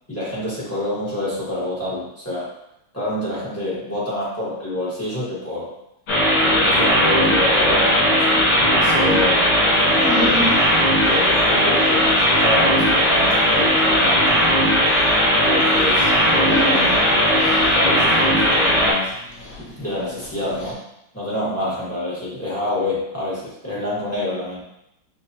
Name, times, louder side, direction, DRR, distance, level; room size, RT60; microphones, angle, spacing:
voice 1, 0.1-2.5 2.9-5.7 6.4-10.5 11.0-14.3 15.4-19.1 19.8-20.8 21.1-24.6, left 1 dB, 15° left, -9 dB, 0.5 m, -27 dB
sound 1, 6.1-18.9, equal, 80° left, 2.5 m, -17 dB
Dog, 9.9-20.7, left 1 dB, 50° left, 1.1 m, -33 dB
6.4 x 2.2 x 2.7 m, 0.84 s
omnidirectional pair, 2.3 m